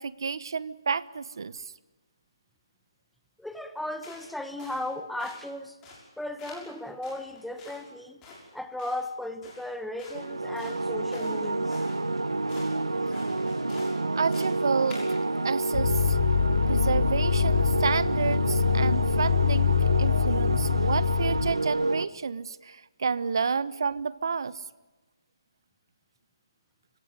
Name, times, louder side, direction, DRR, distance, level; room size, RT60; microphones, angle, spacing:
voice 1, 0.0-1.6 14.2-15.0 15.4-16.2 16.7-24.6, right 5 dB, 60° right, 18 dB, 1.0 m, -30 dB
voice 2, 3.4-5.8 6.2-8.2 8.5-11.8, left 1 dB, ahead, 9 dB, 1.1 m, -36 dB
sound 1, 4.0-4.3 4.6-4.9 5.2-5.5 5.8-6.1 6.4-6.7 7.0-7.8 8.2-8.4 8.8-9.0 9.4-9.7 10.0-10.2 10.6-11.4 11.7-12.0 12.5-12.7 13.1-14.0 14.3-14.6 14.9-15.2, left 3 dB, 15° left, 6.4 m, -47 dB
sound 2, 10.1-22.0, right 2 dB, 85° right, 1.2 m, -29 dB
sound 3, 15.7-21.5, left 8 dB, 50° left, 1.0 m, -25 dB
26.5 x 17.0 x 10.0 m, 1.2 s
figure-of-eight pair, 145°, 3 cm